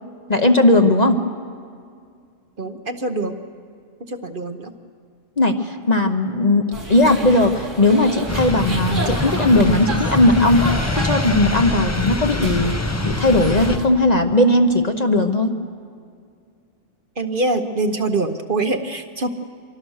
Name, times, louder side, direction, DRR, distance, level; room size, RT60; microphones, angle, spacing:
voice 1, 0.3-1.2 5.4-10.7 10.9-12.7 13.0-15.5, left 2 dB, 35° left, 6 dB, 0.9 m, -17 dB
voice 2, 2.6-3.4 4.1-4.7 17.2-19.3, right 2 dB, 45° right, 7 dB, 1.1 m, -24 dB
sound 1, 6.7-13.9, right 1 dB, 65° right, 3.7 m, -30 dB
sound 2, 8.3-13.8, left 2 dB, 15° left, 0.6 m, -24 dB
25.5 x 24.0 x 6.5 m, 2.2 s
omnidirectional pair, 1.4 m